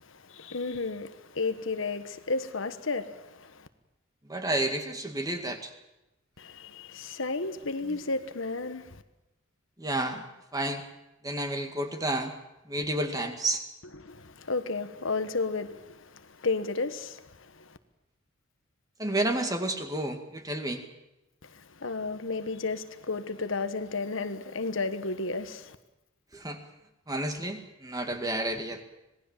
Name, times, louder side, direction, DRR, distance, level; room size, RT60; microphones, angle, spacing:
voice 1, 0.0-3.7 6.4-9.0 14.0-17.8 21.4-25.8, left 3 dB, 65° left, 1.3 m, -33 dB
voice 2, 4.3-5.7 7.9-8.0 9.8-10.3 10.5-10.8 11.2-12.3 12.7-13.6 19.0-20.8 26.3-26.6 27.1-28.8, right 1 dB, 15° right, 2.1 m, -30 dB
26.5 x 18.5 x 7.4 m
head